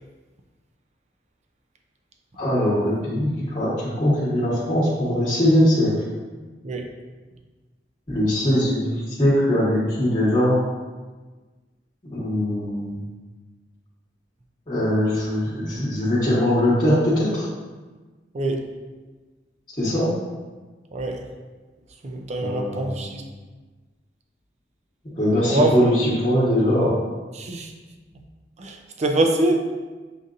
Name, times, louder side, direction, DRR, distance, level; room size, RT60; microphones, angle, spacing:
voice 1, 2.4-3.7 4.0-5.9 8.1-8.8 9.2-10.6 12.1-13.0 14.7-17.5 19.8-20.1 22.4-22.9 25.2-27.0, equal, 30° left, -10 dB, 1.2 m, -21 dB
voice 2, 18.3-18.7 20.9-21.3 22.0-23.2 25.5-26.0 27.3-27.7 28.1-28.2 28.6-29.6, right 2 dB, 40° right, 3 dB, 0.5 m, -24 dB
6.9 x 2.6 x 2.5 m, 1.3 s
head